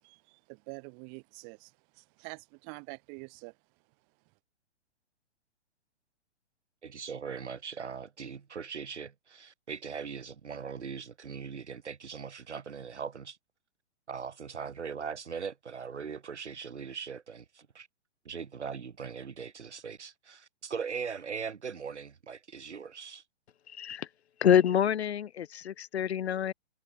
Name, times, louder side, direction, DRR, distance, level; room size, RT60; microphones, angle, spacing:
voice 1, 0.0-3.6, right 40 dB or more, 35° right, 4.3 m, -46 dB
voice 2, 6.8-13.4 14.1-17.9 18.2-23.2, right 6 dB, 80° right, 5.1 m, -40 dB
voice 3, 23.8-24.1 24.4-26.5, left 9 dB, 65° left, 1.3 m, -26 dB
hypercardioid pair, 125°, 34 cm